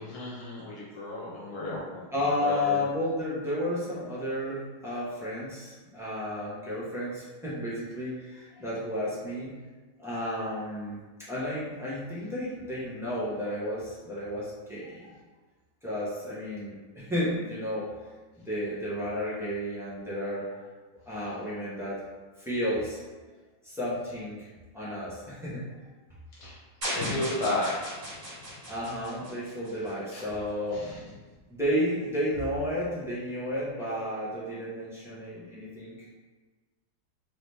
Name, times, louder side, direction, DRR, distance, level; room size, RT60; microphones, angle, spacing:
voice 1, 0.0-2.1 2.4-2.8 26.4-26.6 26.9-28.6 30.1-30.2 30.7-31.0, left 2 dB, 75° left, -6 dB, 1.6 m, -34 dB
voice 2, 2.1-9.5 10.0-11.0 11.3-15.1 15.8-17.9 18.5-20.6 21.1-22.0 22.4-23.0 23.6-24.5 24.7-25.7 28.7-30.8 31.5-35.9, left 1 dB, ahead, -9 dB, 0.8 m, -32 dB
sound 1, 26.8-30.1, equal, 40° right, 1.9 m, -37 dB
3.9 x 2.9 x 3.4 m, 1.3 s
omnidirectional pair, 2.1 m